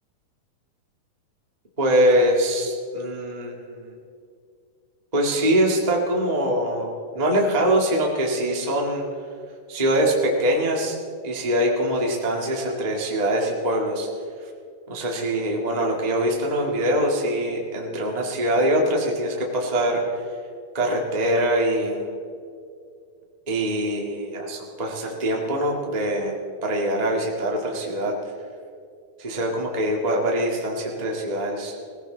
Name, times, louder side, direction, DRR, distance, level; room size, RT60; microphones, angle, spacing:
voice 1, 1.8-4.0 5.1-9.1 9.7-11.0 11.2-14.1 14.9-20.2 20.7-22.1 23.5-26.4 26.6-28.1 29.2-31.8, right 1 dB, 25° right, -1 dB, 0.8 m, -23 dB
21.0 x 16.5 x 3.9 m, 2.3 s
omnidirectional pair, 4.3 m